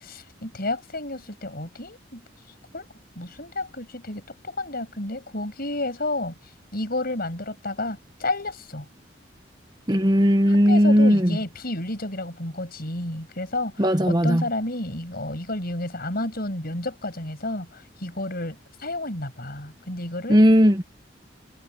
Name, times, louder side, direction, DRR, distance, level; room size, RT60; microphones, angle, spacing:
voice 1, 0.0-2.2 2.7-2.9 3.1-6.4 6.7-8.9 10.5-20.4, left 2 dB, 55° left, 6.5 m, -31 dB
voice 2, 9.9-11.4 13.8-14.4 20.3-20.8, equal, 25° right, 1.4 m, -17 dB
head